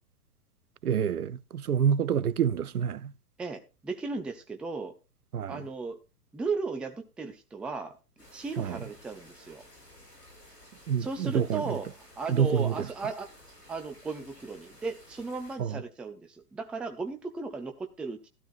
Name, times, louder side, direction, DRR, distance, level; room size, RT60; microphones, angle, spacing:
voice 1, 0.8-3.1 5.3-5.6 8.6-8.8 10.9-11.8 12.3-12.9 15.6-15.8, right 8 dB, 70° right, 0.8 m, -27 dB
voice 2, 3.4-4.9 5.5-6.0 6.3-8.0 8.3-9.6 11.0-13.3 13.7-18.3, right 4 dB, ahead, 0.5 m, -36 dB
sound 1, 8.2-15.6, left 1 dB, 85° left, 7.5 m, -54 dB
14.0 x 12.5 x 2.4 m
figure-of-eight pair, 110°, 47 cm